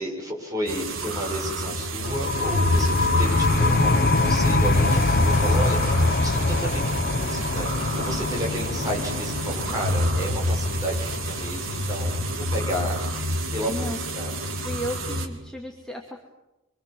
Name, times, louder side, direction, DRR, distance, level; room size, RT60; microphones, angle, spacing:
voice 1, 0.0-13.0 13.5-14.3, right 1 dB, 15° right, -1 dB, 7.6 m, -32 dB
sound 1, 0.7-15.3, equal, 65° right, 3.8 m, -27 dB
sound 2, 2.0-13.4, left 2 dB, 45° left, 1.0 m, -25 dB
voice 2, 13.7-14.0 14.6-16.2, equal, 5° left, 0 dB, 2.5 m, -34 dB
26.5 x 25.5 x 7.7 m, 0.96 s
head